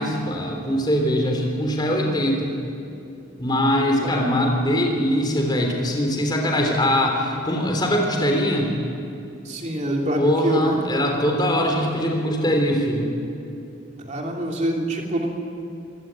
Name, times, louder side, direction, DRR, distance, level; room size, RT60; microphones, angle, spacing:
voice 1, 0.0-2.5 3.4-8.7 10.2-13.1, equal, 20° left, 1 dB, 3.5 m, -22 dB
voice 2, 4.0-4.3 9.4-10.8 14.0-15.3, equal, 35° right, 0 dB, 3.0 m, -25 dB
25.0 x 16.5 x 9.0 m, 2.6 s
head